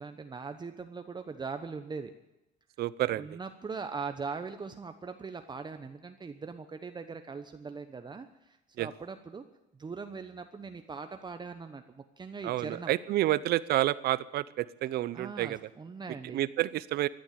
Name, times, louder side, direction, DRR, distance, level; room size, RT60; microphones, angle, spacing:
voice 1, 0.0-2.1 3.1-9.4 9.8-12.9 15.1-16.4, right 5 dB, 25° right, 8 dB, 1.1 m, -41 dB
voice 2, 2.8-3.4 8.8-8.9 12.4-15.6 16.3-17.1, right 14 dB, 70° right, 18 dB, 0.7 m, -29 dB
15.0 x 10.5 x 8.7 m, 0.91 s
cardioid pair, 110°, 17 cm